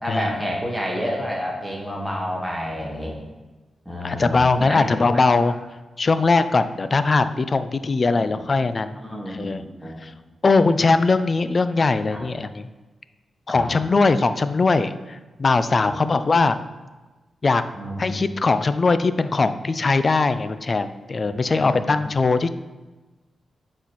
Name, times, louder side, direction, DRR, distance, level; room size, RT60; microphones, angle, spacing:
voice 1, 0.0-3.2 3.8-5.3 8.1-8.4 9.0-10.0 12.1-12.2 13.5-13.7 15.8-16.1 17.8-18.1 21.5-21.9, equal, ahead, -2 dB, 1.6 m, -30 dB
voice 2, 3.9-5.6 6.0-9.0 9.3-9.7 10.0-10.1 10.4-12.7 13.5-16.6 17.4-17.6 18.0-22.5, left 3 dB, 45° left, 12 dB, 0.3 m, -20 dB
7.7 x 4.2 x 3.1 m, 1.2 s
cardioid pair, 60°, 0 cm